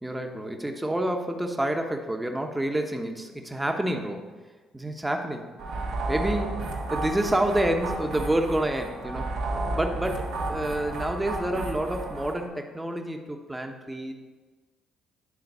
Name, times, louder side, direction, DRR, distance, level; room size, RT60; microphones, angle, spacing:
voice 1, 0.0-4.3 4.7-5.5 6.1-9.3 9.8-14.1, right 1 dB, 10° right, 4 dB, 1.1 m, -28 dB
sound 1, 5.6-12.5, right 2 dB, 75° right, 1.5 m, -32 dB
11.0 x 3.9 x 5.5 m, 1.3 s
supercardioid pair, 60°, 0 cm